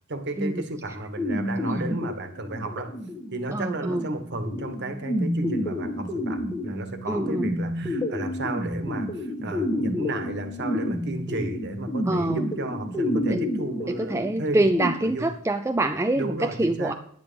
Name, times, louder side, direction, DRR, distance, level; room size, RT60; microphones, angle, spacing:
voice 1, 0.1-3.0 3.3-14.6 15.0-15.3 16.2-16.9, right 2 dB, 55° right, 8 dB, 1.5 m, -33 dB
sound 1, 1.2-14.9, left 1 dB, 15° left, 1.7 m, -30 dB
voice 2, 3.5-4.1 7.1-7.5 12.1-12.5 13.2-13.4 13.9-16.9, right 2 dB, 15° right, 7 dB, 0.4 m, -25 dB
10.5 x 9.1 x 5.2 m, 0.63 s
head